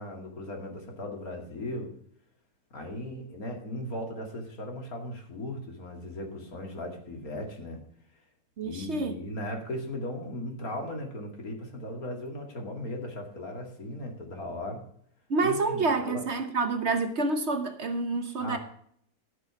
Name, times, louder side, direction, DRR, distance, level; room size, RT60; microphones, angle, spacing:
voice 1, 0.0-1.9 2.7-7.8 8.6-14.8 15.4-16.2 18.4-18.6, left 1 dB, 65° left, 2 dB, 2.8 m, -37 dB
voice 2, 8.6-9.1 15.3-18.6, right 3 dB, 50° right, 8 dB, 1.2 m, -28 dB
13.5 x 6.2 x 5.8 m, 0.64 s
omnidirectional pair, 1.6 m